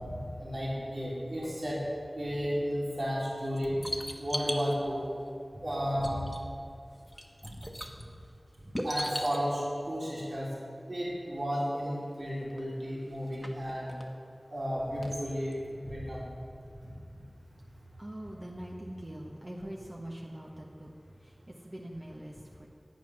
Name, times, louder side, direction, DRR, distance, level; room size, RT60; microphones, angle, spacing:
voice 1, 0.1-1.8 2.1-3.8 4.2-5.0 5.5-6.3 7.4-7.5 8.0-8.1 8.8-10.5 10.9-13.9 14.5-16.2 16.8-16.9, equal, 70° right, -7 dB, 3.1 m, -33 dB
sound 1, 3.2-4.7 5.7-5.8 6.0-6.6 6.9-8.0 8.7-9.4 11.4-11.5 11.7-11.8 12.5-12.6 13.1-14.0 15.0-15.2 15.5-15.6, equal, 10° left, 1.2 m, -37 dB
voice 2, 17.6-22.7, right 1 dB, 35° right, -2 dB, 1.1 m, -43 dB
9.1 x 9.0 x 6.0 m, 2.4 s
wide cardioid pair, 45°, 0 cm